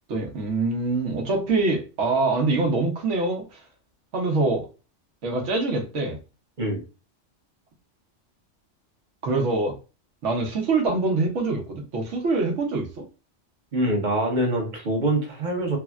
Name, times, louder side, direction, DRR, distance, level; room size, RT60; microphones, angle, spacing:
voice 1, 0.1-3.6 4.1-4.7 5.2-6.2 9.2-9.8 10.2-13.1, right 3 dB, 80° right, 1.1 m, -24 dB
voice 2, 13.7-15.8, right 1 dB, 45° right, 1.0 m, -24 dB
3.5 x 2.0 x 2.3 m
omnidirectional pair, 1.2 m